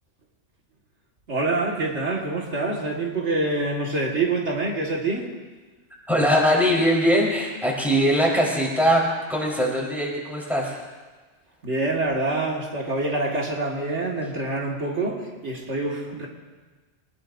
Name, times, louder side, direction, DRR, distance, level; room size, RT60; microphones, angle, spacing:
voice 1, 1.3-5.3 11.6-16.3, right 2 dB, 80° right, -1 dB, 2.2 m, -26 dB
voice 2, 6.1-10.8, equal, ahead, -4 dB, 4.1 m, -21 dB
23.0 x 20.0 x 2.7 m, 1.3 s
omnidirectional pair, 1.2 m